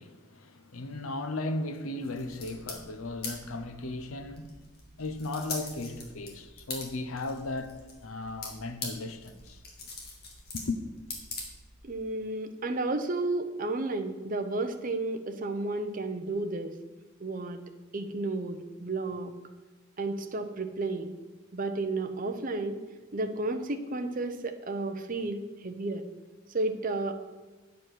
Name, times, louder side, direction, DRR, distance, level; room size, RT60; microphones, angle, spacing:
voice 1, 0.0-4.6 5.0-9.9 10.5-10.8, left 2 dB, 85° left, 0.8 m, -36 dB
sound 1, 2.0-12.0, left 3 dB, 50° left, 1.9 m, -43 dB
voice 2, 11.9-16.7 17.2-17.6 17.9-19.3 20.0-21.1 21.5-22.8 23.1-26.0 26.5-27.1, right 2 dB, 40° right, 0.7 m, -32 dB
9.4 x 5.2 x 6.0 m
head